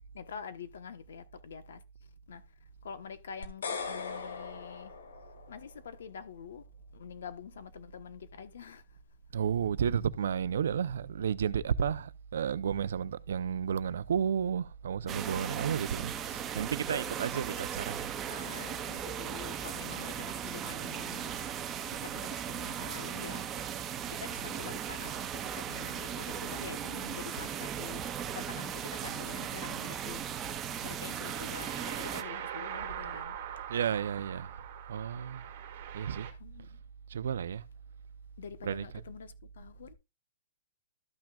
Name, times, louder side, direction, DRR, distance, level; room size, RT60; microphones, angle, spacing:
voice 1, 0.1-1.8 2.3-2.4 2.8-4.9 5.5-6.6 6.9-8.8 15.6-15.7 16.8-17.1 17.5-17.6 18.3-21.4 21.8-23.5 24.1-30.2 30.8-33.4 36.4-36.8 38.4-39.9, left 6 dB, 65° left, 1.1 m, -46 dB
sound 1, 3.4-5.7, left 5 dB, 85° left, 1.8 m, -39 dB
voice 2, 9.3-18.1 33.7-34.5 34.9-35.4 35.9-36.3 37.1-37.6 38.6-38.9, right 8 dB, 65° right, 0.5 m, -32 dB
sound 2, 15.1-32.2, right 9 dB, 15° right, 0.5 m, -37 dB
sound 3, 31.2-36.3, right 10 dB, 35° right, 1.5 m, -42 dB
13.0 x 6.1 x 2.3 m
hypercardioid pair, 175°, 0 cm